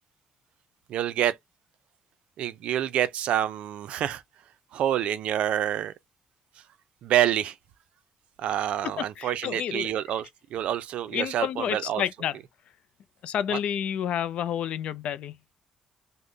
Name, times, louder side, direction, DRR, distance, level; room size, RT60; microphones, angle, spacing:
voice 1, 0.9-1.4 2.4-4.2 4.7-5.9 7.0-7.6 8.4-12.0 13.5-13.6, right 11 dB, 75° right, 0.4 m, -27 dB
voice 2, 9.0-9.9 11.1-12.4 13.2-15.4, left 9 dB, 70° left, 0.3 m, -30 dB
3.8 x 2.0 x 3.2 m
cardioid pair, 100°, 2 cm